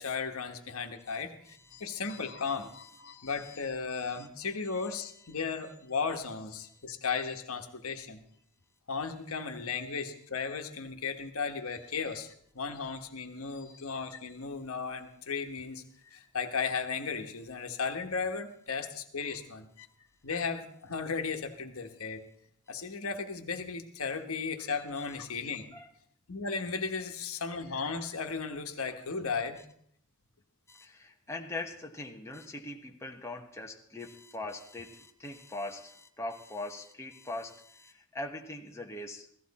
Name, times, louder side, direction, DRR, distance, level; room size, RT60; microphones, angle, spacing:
voice 1, 0.0-8.2 8.9-19.9 20.2-22.2 22.7-25.7 26.3-29.6, left 5 dB, 70° left, 6 dB, 1.3 m, -35 dB
voice 2, 1.1-2.0 2.6-3.6 4.0-4.8 6.6-6.8 25.7-25.9 30.7-39.3, left 2 dB, 15° left, 1 dB, 1.1 m, -42 dB
16.5 x 14.5 x 4.2 m, 0.67 s
head